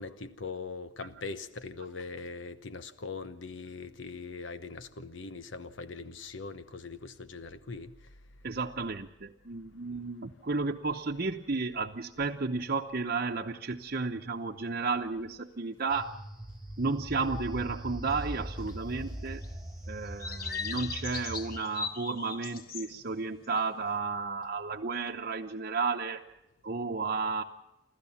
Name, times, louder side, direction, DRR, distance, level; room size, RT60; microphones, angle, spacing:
voice 1, 0.0-7.9 19.1-19.3, left 4 dB, 85° left, 12 dB, 1.0 m, -41 dB
voice 2, 8.4-16.1 16.8-19.4 19.9-26.3 26.6-27.4, right 4 dB, 50° right, 2 dB, 0.9 m, -33 dB
sound 1, 15.9-21.6, right 1 dB, ahead, 1.6 m, -41 dB
sound 2, 18.2-18.3 18.6-18.8 19.4-19.7 20.2-23.0 23.4-23.7, left 5 dB, 50° left, 1.4 m, -39 dB
28.5 x 13.5 x 7.2 m, 0.92 s
head